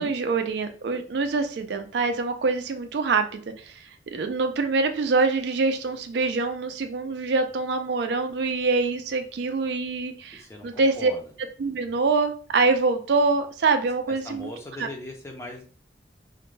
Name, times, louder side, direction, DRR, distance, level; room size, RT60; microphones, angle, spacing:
voice 1, 0.0-3.8 4.1-11.1 11.6-14.5 14.8-14.9, right 3 dB, 65° right, 7 dB, 0.4 m, -25 dB
voice 2, 10.3-11.3 14.1-15.6, left 1 dB, 15° left, 1 dB, 0.5 m, -39 dB
2.5 x 2.1 x 3.1 m, 0.41 s
head